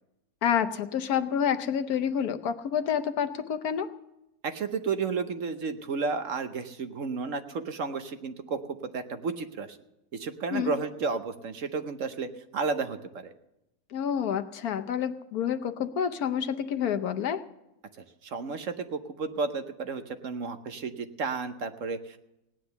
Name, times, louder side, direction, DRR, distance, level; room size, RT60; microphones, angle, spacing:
voice 1, 0.4-3.9 10.5-10.8 13.9-17.4, left 8 dB, 70° left, 9 dB, 1.2 m, -28 dB
voice 2, 4.4-8.6 8.9-9.8 10.1-13.3 18.2-22.2, right 4 dB, 55° right, 9 dB, 1.1 m, -32 dB
17.0 x 10.0 x 6.9 m, 0.91 s
omnidirectional pair, 1.7 m